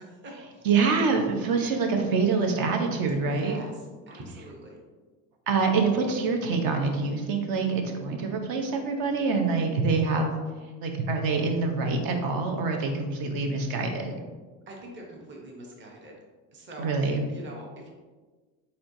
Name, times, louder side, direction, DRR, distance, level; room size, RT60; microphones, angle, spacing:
voice 1, 0.0-0.7 3.3-3.7 4.1-4.8 14.7-16.1 16.5-17.0 17.3-17.9, right 1 dB, 25° right, -1 dB, 0.9 m, -44 dB
voice 2, 0.6-3.6 5.5-10.4 10.8-14.2 16.8-17.3, right 4 dB, 55° right, 4 dB, 0.9 m, -25 dB
4.4 x 4.3 x 2.6 m, 1.3 s
supercardioid pair, 110°, 43 cm